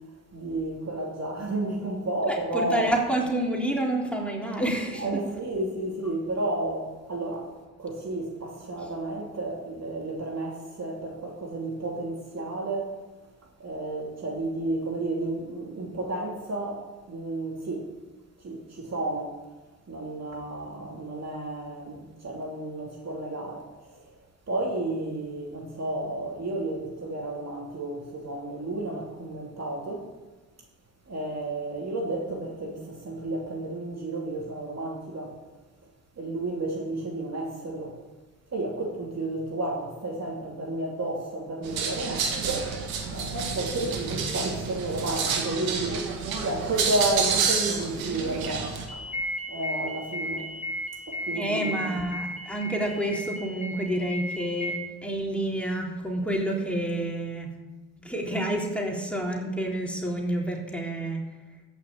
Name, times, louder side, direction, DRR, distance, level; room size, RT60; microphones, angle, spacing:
voice 1, 0.3-2.9 5.0-7.5 7.8-13.0 13.6-17.9 18.4-19.4 19.9-24.2 24.5-30.1 31.1-35.4 36.2-38.0 38.5-42.7 43.1-50.5 51.1-52.0, right 2 dB, 45° right, 2.9 m, -32 dB
voice 2, 2.3-5.0 51.3-54.8 55.0-57.5 58.0-61.2, right 1 dB, 5° left, 3.7 m, -28 dB
sound 1, 41.6-48.9, right 5 dB, 85° right, 1.9 m, -29 dB
sound 2, 48.9-54.8, equal, 20° left, 1.6 m, -35 dB
14.5 x 6.5 x 8.5 m
supercardioid pair, 55°, 36 cm